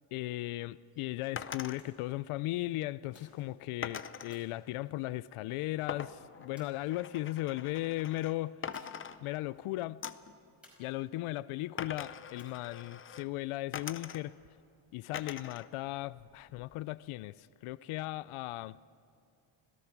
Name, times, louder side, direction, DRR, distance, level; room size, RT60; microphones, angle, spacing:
voice 1, 0.1-8.6 9.2-10.0 10.8-14.3 14.9-18.8, left 17 dB, 90° left, 0.6 m, -37 dB
sound 1, 1.4-1.8 3.8-4.4 5.9-8.4 8.6-9.6 10.0-10.3 11.8-13.3 13.7-14.5 15.1-15.7 16.0-16.8, left 7 dB, 25° left, 0.5 m, -43 dB
sound 2, 1.5-2.2 3.1-3.8 4.3-5.6 6.6-7.3 8.7-9.2 9.5-9.6 10.6-11.4 12.4-12.9, left 1 dB, ahead, 5.1 m, -63 dB
26.0 x 17.0 x 6.0 m
cardioid pair, 175°, 49 cm